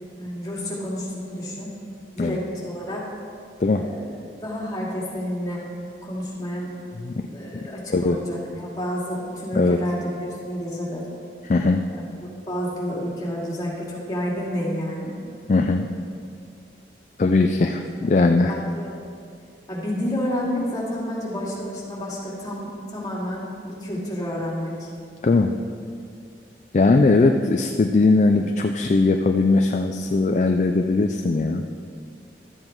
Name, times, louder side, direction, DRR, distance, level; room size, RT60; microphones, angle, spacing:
voice 1, 0.2-1.7 2.1-3.1 3.7-4.1 4.4-5.6 6.0-6.7 7.3-11.0 12.2-15.1 17.6-17.7 18.5-18.9 19.7-24.9 27.1-27.2, equal, 20° left, -6 dB, 2.3 m, -30 dB
voice 2, 11.4-11.8 15.5-15.9 17.2-18.5 25.2-25.6 26.7-31.7, left 3 dB, 40° left, 5 dB, 0.4 m, -19 dB
12.5 x 7.6 x 4.6 m, 2.4 s
head